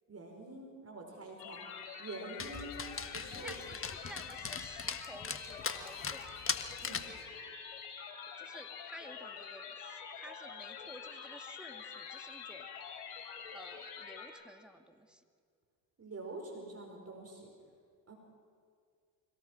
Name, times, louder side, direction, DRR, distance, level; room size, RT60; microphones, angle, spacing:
voice 1, 0.1-1.6 2.0-3.6 6.8-7.1 16.0-17.5 18.1-18.2, right 2 dB, 30° right, 1 dB, 4.9 m, -46 dB
sound 1, 1.4-14.3, left 6 dB, 80° left, 3.6 m, -46 dB
Dog, 2.4-7.2, left 5 dB, 25° left, 1.5 m, -40 dB
voice 2, 3.3-6.2 8.4-12.7 13.5-15.2, right 1 dB, ahead, 5 dB, 2.1 m, -53 dB
25.5 x 17.5 x 6.4 m, 2.1 s
hypercardioid pair, 65°, 49 cm